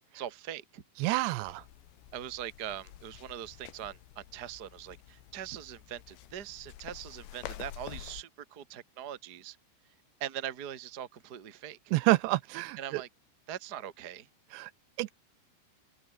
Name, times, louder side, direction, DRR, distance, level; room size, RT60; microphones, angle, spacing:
voice 1, 0.1-0.8 2.1-9.6 10.2-11.8 12.8-13.1 13.5-14.3, right 10 dB, 45° right, 1.2 m, -41 dB
voice 2, 1.0-1.6 11.9-13.0 14.5-14.7 15.0-15.1, right 19 dB, 85° right, 2.8 m, -28 dB
sound 1, 1.4-8.2, left 12 dB, 90° left, 4.0 m, -48 dB
open air
omnidirectional pair, 5.1 m